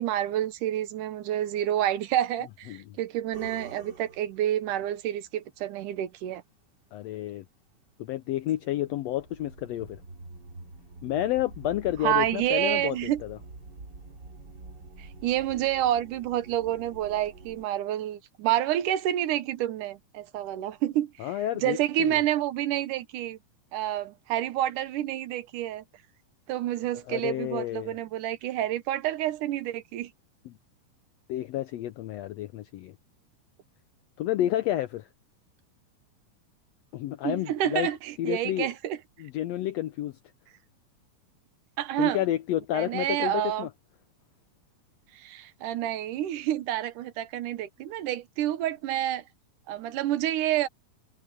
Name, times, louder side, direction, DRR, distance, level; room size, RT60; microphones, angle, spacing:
voice 1, 0.0-6.4 12.0-13.2 15.0-23.4 23.7-25.8 26.5-30.1 37.2-39.0 41.8-42.2 42.7-43.7 45.1-49.2 49.7-50.7, right 12 dB, 80° right, 2.5 m, -29 dB
sound 1, 3.3-4.5 8.2-17.6, right 3 dB, 35° right, 3.6 m, -47 dB
voice 2, 6.9-7.4 8.0-10.0 11.0-13.0 13.2-13.4 21.2-22.2 27.1-28.0 31.3-33.0 34.2-35.1 36.9-37.9 38.2-38.7 39.2-40.1 42.0-43.7, left 13 dB, 85° left, 1.5 m, -30 dB
omnidirectional pair, 3.6 m